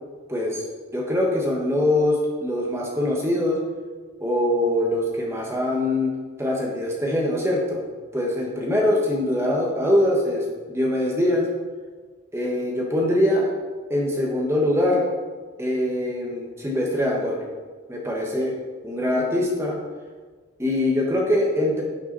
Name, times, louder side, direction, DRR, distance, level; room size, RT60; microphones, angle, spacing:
voice 1, 0.3-0.6 0.9-3.6 4.2-6.1 6.4-7.8 8.1-11.5 12.3-13.5 13.9-15.1 15.6-17.5 17.9-18.5 18.8-19.8 20.6-21.8, left 1 dB, 15° right, -2 dB, 1.5 m, -23 dB
11.5 x 6.1 x 4.2 m, 1.5 s
head